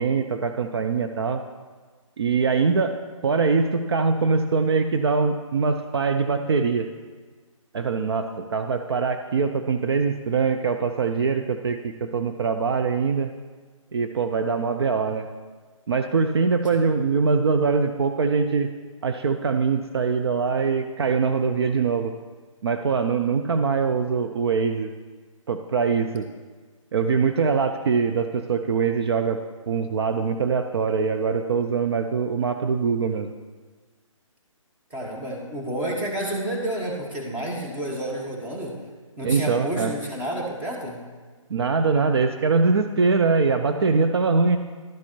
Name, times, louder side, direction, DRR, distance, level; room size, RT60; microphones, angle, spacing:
voice 1, 0.0-1.4 2.2-2.9 3.2-6.8 7.7-13.3 13.9-15.3 15.9-18.7 19.0-22.1 22.6-24.9 25.5-26.3 26.9-29.4 29.7-33.3 39.2-39.9 41.5-44.6, right 5 dB, 50° right, 7 dB, 0.5 m, -23 dB
voice 2, 34.9-38.7 39.2-41.0, right 1 dB, 10° right, -2 dB, 1.0 m, -30 dB
11.5 x 4.3 x 4.4 m, 1.5 s
hypercardioid pair, 155°, 17 cm